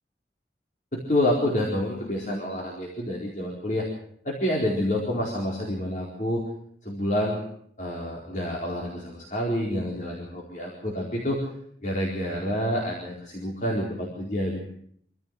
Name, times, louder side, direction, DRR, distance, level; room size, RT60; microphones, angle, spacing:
voice 1, 0.9-3.8 4.2-6.4 6.8-7.4 7.8-11.5 11.8-14.6, left 1 dB, 45° left, -3 dB, 4.4 m, -28 dB
26.5 x 15.0 x 7.8 m, 0.66 s
head